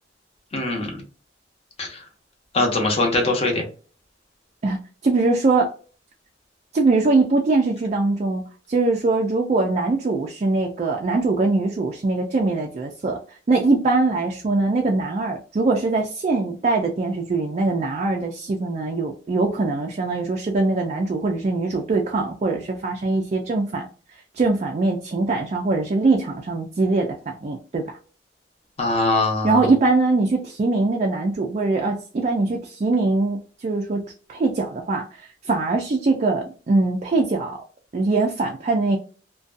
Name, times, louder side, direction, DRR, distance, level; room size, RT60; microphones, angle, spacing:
voice 1, 0.5-1.0 1.8-2.0 2.5-3.6 28.8-29.7, left 2 dB, 35° left, 1 dB, 0.8 m, -22 dB
voice 2, 4.6-5.7 6.7-13.2 13.5-23.9 24.3-28.0 29.4-37.6 37.9-39.0, right 3 dB, 40° right, 1 dB, 0.3 m, -22 dB
2.5 x 2.2 x 2.4 m, 0.39 s
head